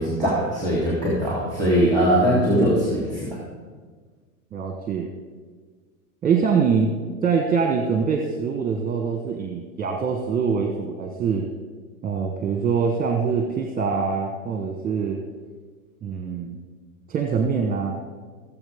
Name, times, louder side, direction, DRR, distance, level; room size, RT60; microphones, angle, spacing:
voice 1, 0.0-3.4, equal, 10° left, -5 dB, 3.2 m, -21 dB
voice 2, 4.5-5.1 6.2-6.9 7.2-11.5 12.0-15.2 16.0-16.6 17.1-18.0, right 6 dB, 20° right, 3 dB, 1.2 m, -24 dB
18.5 x 7.3 x 3.6 m, 1.5 s
hypercardioid pair, 110°, 42 cm